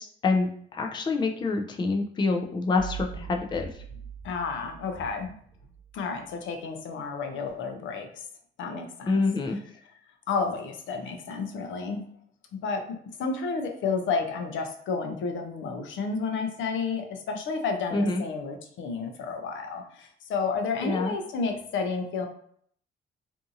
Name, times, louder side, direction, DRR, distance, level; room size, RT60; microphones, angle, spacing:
voice 1, 0.0-3.7 9.1-9.6 17.9-18.2 20.8-21.1, left 3 dB, 25° left, 3 dB, 0.4 m, -26 dB
sound 1, 2.8-6.3, right 5 dB, 40° left, 0.9 m, -42 dB
voice 2, 4.2-5.4 5.9-8.3 8.6-9.2 10.3-12.0 12.5-22.3, left 4 dB, 75° left, 5 dB, 0.5 m, -31 dB
2.6 x 2.5 x 2.6 m, 0.62 s
cardioid pair, 90°, 20 cm